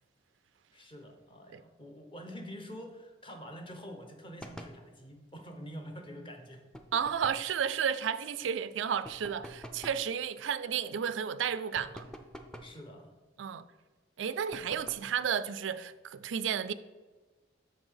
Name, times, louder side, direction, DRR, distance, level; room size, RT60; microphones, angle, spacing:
voice 1, 0.7-6.6 12.6-13.1, equal, 30° left, 1.0 m, -46 dB
sound 1, 4.4-4.8 6.7-7.5 9.0-10.1 11.7-12.8 14.5-15.1, equal, 5° left, 0.5 m, -47 dB
voice 2, 6.9-12.0 13.4-13.6 14.2-16.7, right 8 dB, 85° right, 0.4 m, -32 dB
6.6 x 5.3 x 5.6 m
head